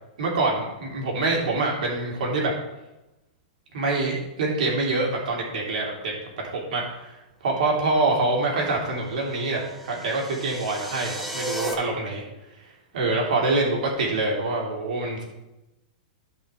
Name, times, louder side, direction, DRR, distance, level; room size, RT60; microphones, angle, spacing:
voice 1, 0.2-2.5 3.7-6.1 6.4-7.2 7.4-12.2 12.9-15.2, right 3 dB, 70° right, -2 dB, 3.0 m, -25 dB
sound 1, 9.2-11.7, right 1 dB, ahead, 0.8 m, -35 dB
15.0 x 5.5 x 3.4 m, 0.97 s
supercardioid pair, 170°, 5 cm